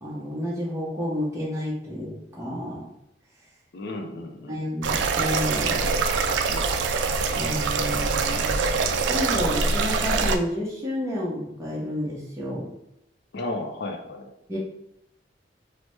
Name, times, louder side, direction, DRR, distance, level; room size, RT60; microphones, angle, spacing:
voice 1, 0.0-2.9 4.5-5.9 7.3-8.7 9.1-12.7 14.5-14.6, left 1 dB, 15° right, -7 dB, 0.7 m, -30 dB
voice 2, 3.7-4.6 6.5-6.8 13.3-14.3, left 2 dB, 65° left, 4 dB, 0.4 m, -34 dB
sound 1, 4.8-10.4, right 4 dB, 75° right, 0.3 m, -24 dB
3.2 x 2.0 x 3.1 m, 0.80 s
head